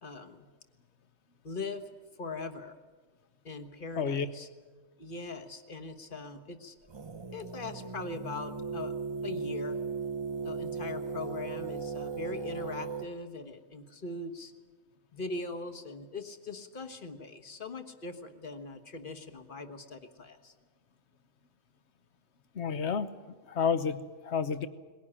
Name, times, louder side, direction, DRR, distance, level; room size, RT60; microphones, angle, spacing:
voice 1, 0.0-0.5 1.4-1.9 2.2-2.8 3.4-4.5 5.0-6.8 7.3-9.0 9.2-9.8 10.4-14.5 15.1-20.5, left 3 dB, 45° left, 8 dB, 1.5 m, -41 dB
sound 1, 6.9-13.1, right 4 dB, 30° right, 0.6 m, -37 dB
voice 2, 22.5-23.1 23.5-24.7, left 6 dB, 60° left, 12 dB, 1.2 m, -30 dB
21.0 x 17.5 x 10.0 m, 1.4 s
omnidirectional pair, 1.3 m